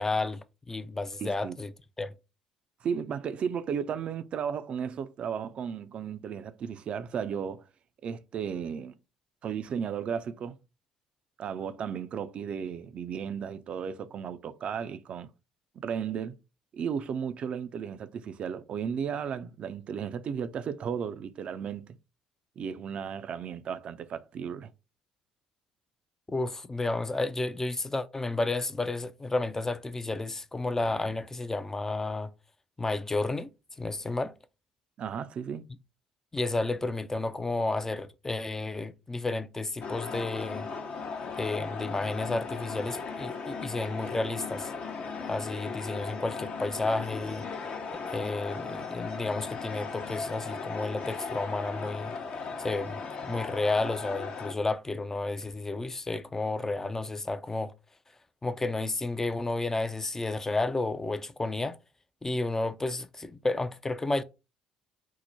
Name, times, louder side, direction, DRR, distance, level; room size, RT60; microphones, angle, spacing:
voice 1, 0.0-1.7 2.0-2.1 26.3-32.3 32.8-33.5 33.8-34.3 36.3-40.7 41.3-44.7 45.2-47.5 48.0-52.2 52.6-57.7 58.4-61.8 62.2-64.2, left 2 dB, 15° left, 0.4 m, -31 dB
voice 2, 1.2-1.6 2.8-7.6 8.0-8.9 9.4-10.6 11.4-15.3 15.8-16.4 16.7-22.0 22.6-24.7 35.0-35.7, right 7 dB, 50° right, 0.4 m, -34 dB
sound 1, 39.8-54.5, left 4 dB, 50° left, 0.8 m, -37 dB
4.6 x 2.1 x 4.1 m
hypercardioid pair, 55°, 3 cm